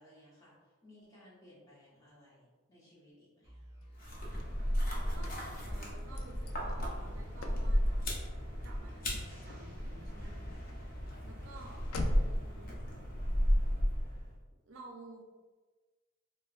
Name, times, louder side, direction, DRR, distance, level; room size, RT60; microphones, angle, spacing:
voice 1, 0.0-3.6, left 1 dB, 15° left, -8 dB, 1.0 m, -60 dB
sound 1, 3.4-13.7, equal, 20° right, 0.9 m, -53 dB
Car / Slam, 3.8-12.5, left 2 dB, 80° left, 0.4 m, -48 dB
sound 2, 4.0-14.4, equal, 40° left, 0.7 m, -34 dB
voice 2, 5.1-8.2 8.6-10.5 11.2-12.8 14.7-15.2, right 2 dB, 65° right, 1 dB, 0.5 m, -53 dB
4.3 x 2.1 x 2.4 m, 1.3 s
head